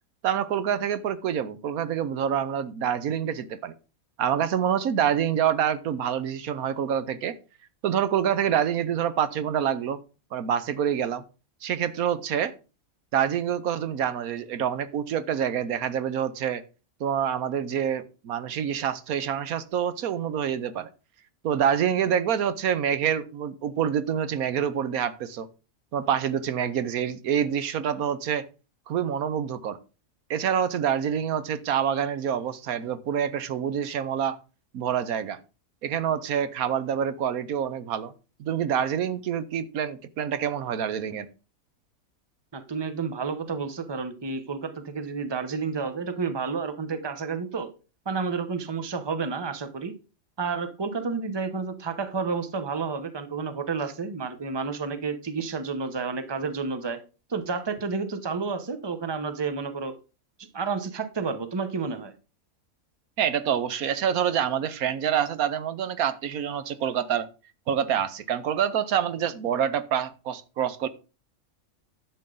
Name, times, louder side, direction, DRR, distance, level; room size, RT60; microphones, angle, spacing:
voice 1, 0.2-3.7 4.2-7.4 7.8-10.0 10.3-11.2 11.6-12.5 13.1-16.6 17.0-20.9 21.4-25.5 25.9-28.4 28.9-29.8 30.3-34.4 34.7-35.4 35.8-38.1 38.4-41.3 63.2-67.3 67.7-70.9, right 9 dB, 90° right, 14 dB, 1.3 m, -26 dB
voice 2, 42.5-47.7 48.1-49.9 50.4-57.0 57.3-59.9 60.5-62.1, right 5 dB, 20° right, 10 dB, 0.8 m, -30 dB
11.0 x 7.7 x 3.9 m, 0.33 s
omnidirectional pair, 1.5 m